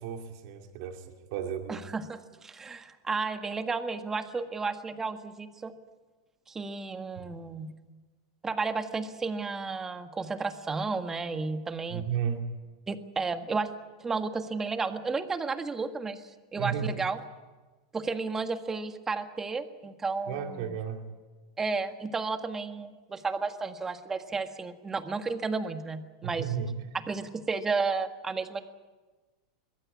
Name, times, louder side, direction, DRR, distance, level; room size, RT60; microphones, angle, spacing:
voice 1, 0.0-1.8 7.2-7.3 11.9-12.5 16.6-16.9 20.3-21.0 26.2-26.7, right 8 dB, 65° right, 4 dB, 2.5 m, -33 dB
voice 2, 1.7-5.7 6.5-7.7 8.4-12.0 12.9-13.7 14.0-16.2 16.5-17.2 17.9-20.7 21.6-26.4 27.1-28.6, right 4 dB, 15° right, 8 dB, 1.7 m, -32 dB
22.5 x 16.0 x 9.7 m, 1.3 s
supercardioid pair, 120°, 2 cm